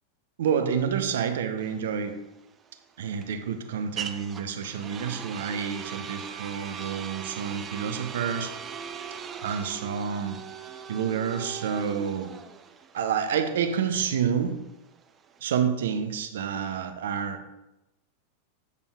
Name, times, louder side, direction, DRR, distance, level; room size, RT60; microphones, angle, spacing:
voice 1, 0.4-2.2 3.0-8.5 9.4-10.4 10.9-12.3 12.9-14.5 15.4-17.4, right 7 dB, 60° right, 8 dB, 0.6 m, -28 dB
sound 1, 1.6-15.4, right 7 dB, 25° right, 0.6 m, -40 dB
8.2 x 6.9 x 2.4 m, 0.93 s
figure-of-eight pair, 90°, 0 cm